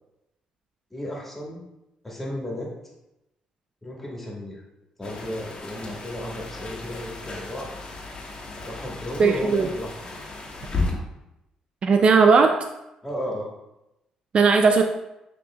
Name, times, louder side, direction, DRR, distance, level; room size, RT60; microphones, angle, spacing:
voice 1, 0.9-1.6 2.0-2.7 3.8-4.6 5.0-7.7 8.6-10.1 13.0-13.5, left 1 dB, 10° left, -4 dB, 1.7 m, -34 dB
sound 1, 5.0-10.9, left 3 dB, 45° left, 1.3 m, -34 dB
voice 2, 9.2-9.7 11.8-12.5 14.3-14.8, right 5 dB, 50° right, 5 dB, 0.3 m, -17 dB
6.9 x 3.1 x 2.3 m, 0.90 s
supercardioid pair, 70°, 2 cm